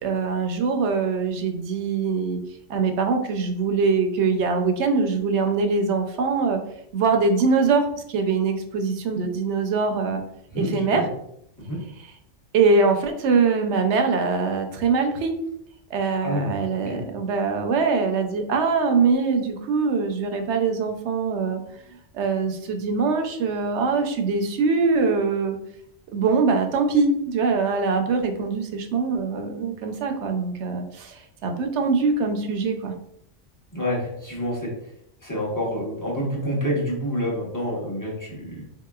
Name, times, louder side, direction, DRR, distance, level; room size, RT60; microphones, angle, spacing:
voice 1, 0.0-2.4 2.7-6.6 6.9-10.2 10.5-11.0 12.0-12.1 12.5-15.4 15.9-21.6 22.1-25.6 26.1-32.9, right 4 dB, 75° right, 5 dB, 0.9 m, -23 dB
voice 2, 10.5-11.1 11.7-11.8 16.2-16.5 16.9-17.0 33.7-34.7 35.2-38.6, equal, 15° left, -4 dB, 1.0 m, -27 dB
4.1 x 2.8 x 2.3 m, 0.74 s
omnidirectional pair, 1.2 m